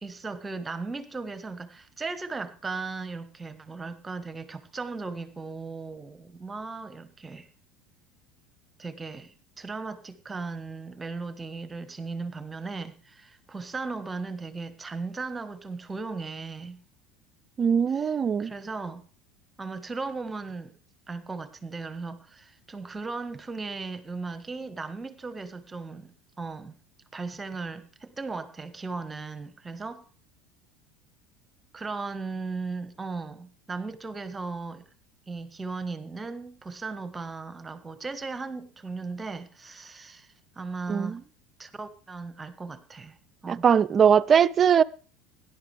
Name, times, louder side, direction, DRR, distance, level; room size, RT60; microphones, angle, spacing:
voice 1, 0.0-7.5 8.8-16.8 17.9-18.1 18.4-19.0 19.6-20.7 21.1-26.8 27.1-30.0 31.7-34.8 35.3-41.2 41.6-43.2 43.4-43.6, right 4 dB, 20° right, 1.6 m, -37 dB
voice 2, 17.6-18.5 40.9-41.2 43.5-44.8, right 7 dB, 35° right, 0.5 m, -21 dB
17.0 x 11.0 x 3.4 m
hypercardioid pair, 75°, 0 cm